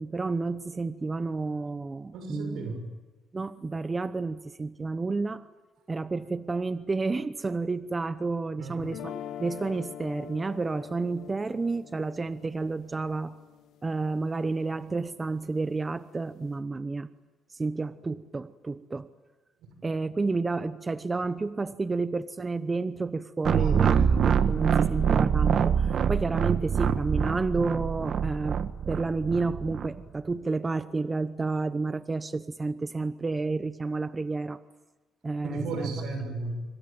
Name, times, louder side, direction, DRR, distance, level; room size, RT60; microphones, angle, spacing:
voice 1, 0.0-2.6 3.3-5.4 5.9-13.4 13.8-17.1 17.5-19.1 19.8-24.0 24.5-28.6 28.9-34.6 35.2-35.9, right 3 dB, 25° right, 13 dB, 0.9 m, -30 dB
voice 2, 2.1-2.9 8.6-8.8 19.6-19.7 23.6-24.9 35.4-36.6, right 3 dB, 85° right, 6 dB, 6.6 m, -36 dB
sound 1, 8.8-14.9, left 10 dB, 85° left, 1.5 m, -44 dB
sound 2, 23.4-29.9, right 7 dB, 60° right, 1.5 m, -25 dB
26.0 x 25.5 x 9.0 m, 1.2 s
cardioid pair, 90°, 0 cm